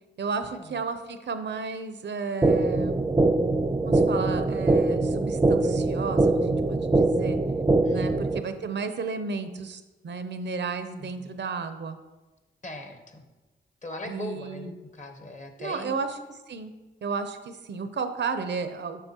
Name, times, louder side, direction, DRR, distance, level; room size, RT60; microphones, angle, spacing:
voice 1, 0.2-3.0 3.8-7.4 7.9-12.0 14.1-14.7 15.6-16.2 16.5-16.7 17.0-19.1, right 5 dB, 60° right, 9 dB, 0.6 m, -33 dB
sound 1, 2.4-8.4, right 2 dB, 15° right, 0.4 m, -23 dB
voice 2, 7.8-8.2 11.0-11.3 12.6-13.2 13.8-15.9, left 2 dB, 35° left, 5 dB, 1.0 m, -40 dB
6.8 x 6.3 x 2.9 m, 1.1 s
cardioid pair, 55°, 21 cm